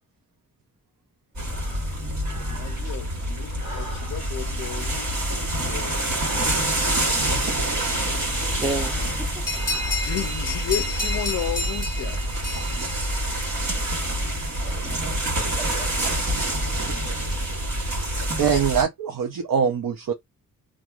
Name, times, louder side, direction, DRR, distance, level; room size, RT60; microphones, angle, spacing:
Breathing, 1.4-3.2 3.5-8.1 8.5-10.5, equal, 35° right, 1.2 m, -42 dB
sound 1, 1.4-18.8, right 1 dB, 60° right, 1.5 m, -27 dB
voice 1, 2.4-6.3 9.9-12.2, left 10 dB, 55° left, 0.4 m, -33 dB
voice 2, 8.6-9.6 14.6-14.9 15.4-16.3, right 2 dB, 15° right, 0.8 m, -34 dB
sound 2, 9.5-13.7, left 2 dB, 10° left, 1.3 m, -31 dB
voice 3, 18.4-20.1, right 7 dB, 75° right, 0.6 m, -23 dB
2.9 x 2.5 x 2.4 m
wide cardioid pair, 125°, 33 cm